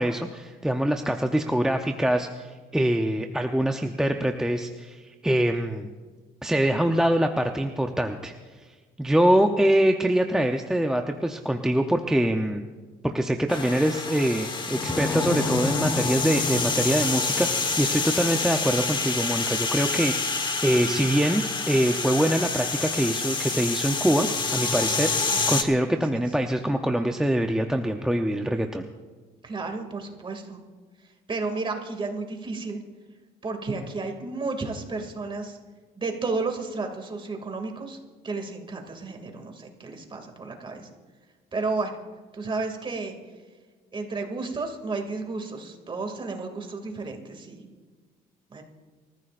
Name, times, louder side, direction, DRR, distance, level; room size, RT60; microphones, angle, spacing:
voice 1, 0.0-5.9 6.4-8.3 9.0-12.6 13.0-24.3 24.5-28.9, right 1 dB, 5° right, 4 dB, 0.7 m, -24 dB
sound 1, 13.5-25.6, left 4 dB, 30° left, 1.4 m, -27 dB
voice 2, 25.9-26.2 29.4-30.6 31.3-32.8 33.4-35.6 36.0-38.0 38.2-40.9 41.5-41.9 42.3-43.2 43.9-47.7 48.5-48.6, right 3 dB, 30° right, 4 dB, 2.4 m, -32 dB
26.0 x 14.5 x 2.5 m, 1.4 s
cardioid pair, 110°, 17 cm